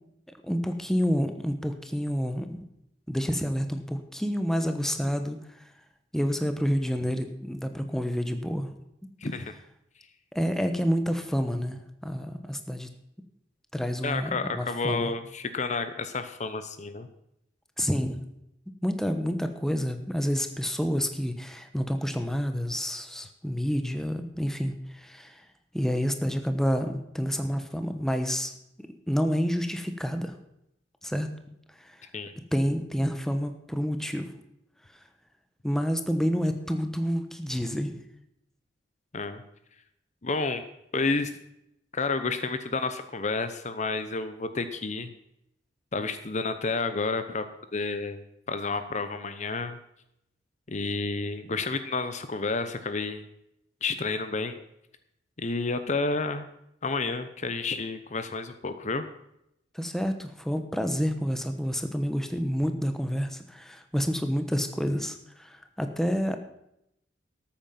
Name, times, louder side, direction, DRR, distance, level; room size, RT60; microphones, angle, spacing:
voice 1, 0.4-2.6 3.1-5.6 6.1-8.7 10.3-12.9 13.7-15.1 17.8-18.2 18.8-25.4 25.7-28.5 29.1-30.4 31.0-31.3 31.8-32.0 32.5-34.3 35.6-38.0 59.7-66.4, equal, 5° left, 7 dB, 1.1 m, -29 dB
voice 2, 9.2-9.6 14.0-17.1 32.1-32.3 39.1-39.4 40.2-40.6 40.9-41.4 41.9-45.1 45.9-47.4 47.7-48.2 48.5-49.8 50.7-53.2 53.8-54.6 55.4-56.5 56.8-59.1, left 3 dB, 40° left, 10 dB, 0.8 m, -30 dB
13.5 x 8.8 x 5.9 m, 0.79 s
head